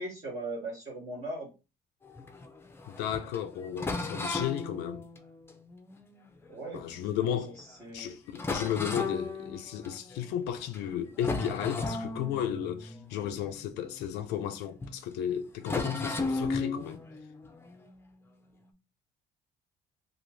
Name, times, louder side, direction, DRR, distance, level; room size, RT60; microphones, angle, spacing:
voice 1, 0.0-1.5 6.5-6.8 7.2-8.2, right 2 dB, 35° right, 1.2 m, -39 dB
sound 1, 2.0-7.0 7.6-7.7 8.0-8.1 8.4-10.3 10.7-10.9 11.2-14.6 14.8-15.0 15.6-18.6, left 3 dB, 15° left, 0.4 m, -36 dB
voice 2, 2.9-5.0 6.7-7.6 7.9-17.0, left 10 dB, 90° left, 0.4 m, -34 dB
2.5 x 2.5 x 3.1 m
cardioid pair, 110°, 17 cm